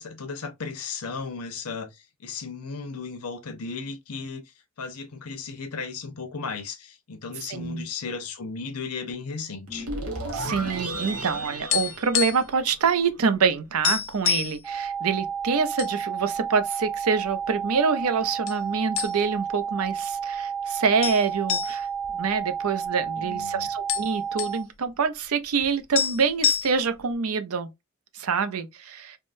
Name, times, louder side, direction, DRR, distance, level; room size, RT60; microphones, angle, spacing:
voice 1, 0.0-4.4 4.8-9.9 23.2-23.7, left 5 dB, 90° left, 0.8 m, -35 dB
voice 2, 7.5-7.9 10.3-21.9 22.1-27.7 28.1-29.2, right 5 dB, 75° right, 0.5 m, -26 dB
sound 1, 9.7-12.9, right 1 dB, 90° right, 1.2 m, -33 dB
sound 2, 11.6-12.6 12.8-13.0 13.4-13.5 13.8-14.6 15.3-15.9 16.3-16.4 17.1-17.8 18.5-18.6 19.0-19.5 19.8-19.9 21.0-23.1 23.4-23.5 23.7-24.6 25.6-25.7 25.9-27.0, left 9 dB, 60° left, 0.4 m, -27 dB
sound 3, 14.6-24.6, right 7 dB, 5° right, 0.7 m, -31 dB
3.6 x 2.1 x 2.4 m
head